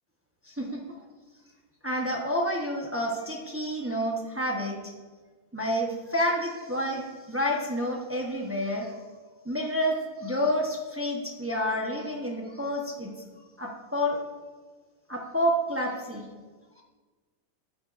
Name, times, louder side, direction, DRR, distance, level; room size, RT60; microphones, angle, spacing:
voice 1, 0.4-0.8 1.8-4.9 5.5-9.0 9.4-13.1 13.6-14.2 15.1-16.3, equal, 15° right, -1 dB, 0.4 m, -29 dB
12.5 x 8.6 x 2.5 m, 1.4 s
omnidirectional pair, 2.0 m